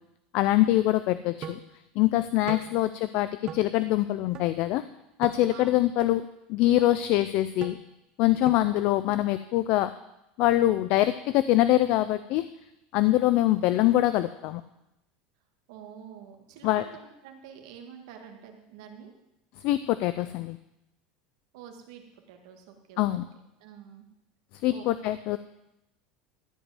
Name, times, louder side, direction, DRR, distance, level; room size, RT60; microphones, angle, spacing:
voice 1, 0.3-1.6 2.0-4.8 5.2-6.2 6.5-7.8 8.2-9.9 10.4-12.5 12.9-14.6 16.6-16.8 19.6-20.6 23.0-23.2 24.6-25.4, left 15 dB, 50° left, 13 dB, 0.5 m, -24 dB
sound 1, 1.4-1.7 2.5-2.7 3.5-3.6 4.3-4.5 5.2-5.4 6.0-6.1 6.8-6.9 7.6-7.7 8.5-8.7, right 9 dB, 30° right, 0.8 m, -38 dB
voice 2, 15.7-19.1 21.5-23.0 23.6-24.1 24.7-24.9, right 8 dB, 70° right, 4 dB, 2.0 m, -47 dB
13.5 x 5.1 x 9.2 m, 0.88 s
supercardioid pair, 165°, 3 cm